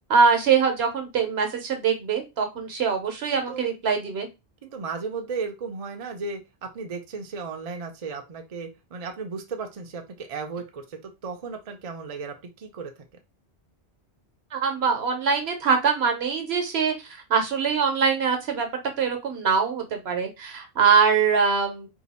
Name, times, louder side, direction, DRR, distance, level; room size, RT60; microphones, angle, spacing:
voice 1, 0.1-4.3 14.5-18.7 19.0-21.9, right 6 dB, 70° right, 5 dB, 1.1 m, -23 dB
voice 2, 4.6-12.9, right 4 dB, 45° right, 4 dB, 0.5 m, -35 dB
2.7 x 2.4 x 4.1 m, 0.25 s
omnidirectional pair, 1.1 m